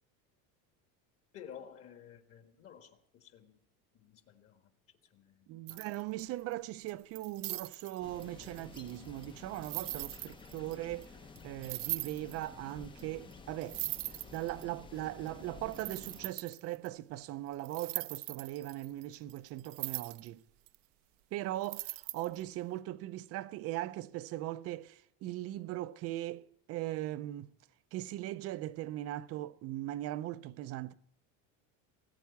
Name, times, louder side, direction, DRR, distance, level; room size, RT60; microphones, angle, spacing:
voice 1, 1.3-3.6 3.9-4.7 5.1-5.9, left 8 dB, 35° left, 1.5 m, -53 dB
voice 2, 5.5-11.2 11.4-13.8 14.3-20.4 21.3-27.5 27.9-30.9, right 15 dB, 40° right, 0.5 m, -39 dB
sound 1, 5.7-6.4 6.9-10.8 11.0-11.1 11.4-11.5 11.6-12.4 13.0-13.1 13.3-13.4 13.6-14.6 15.3-15.4 15.7-16.9 17.6-20.3 20.7-20.8 21.6-22.4, right 20 dB, 70° right, 0.7 m, -40 dB
sound 2, 8.0-16.3, left 4 dB, 15° left, 0.6 m, -52 dB
19.0 x 9.2 x 7.0 m
cardioid pair, 165°, 39 cm